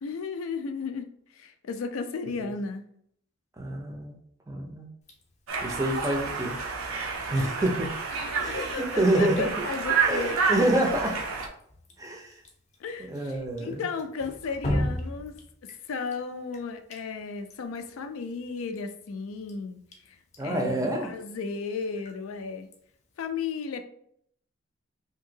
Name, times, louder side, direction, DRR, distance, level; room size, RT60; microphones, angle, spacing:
voice 1, 0.0-1.1 1.3-2.9 8.1-10.4 12.8-15.4 15.6-19.8 20.1-20.2 20.4-22.7 23.2-23.8, left 5 dB, 85° left, 8 dB, 0.4 m, -34 dB
voice 2, 3.6-4.1 4.5-4.9 5.6-6.6 7.3-7.9 8.4-9.5 10.0-11.2 12.0-12.3 13.1-13.8 20.4-21.1, right 1 dB, 15° right, 1 dB, 0.5 m, -27 dB
Drip, 5.0-23.3, left 1 dB, 35° left, 0.5 m, -41 dB
Conversation, 5.5-11.5, right 5 dB, 90° right, 0.5 m, -30 dB
2.9 x 2.7 x 2.7 m, 0.68 s
head